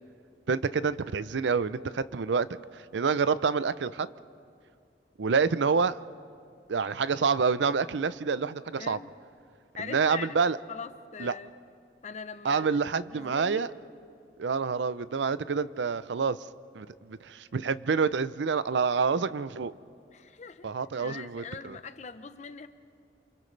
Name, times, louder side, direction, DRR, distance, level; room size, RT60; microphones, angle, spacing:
voice 1, 0.5-2.5 2.7-4.1 5.2-6.0 6.7-9.0 9.8-10.6 11.2-11.3 12.4-13.7 14.4-16.4 16.7-19.7 20.6-21.8, right 5 dB, 90° right, 16 dB, 0.5 m, -27 dB
voice 2, 8.8-9.1 9.8-10.4 10.7-11.5 12.0-12.8 13.1-13.7 20.1-20.7 21.0-22.7, left 5 dB, 40° left, 10 dB, 0.7 m, -42 dB
28.5 x 27.5 x 3.3 m, 2.3 s
head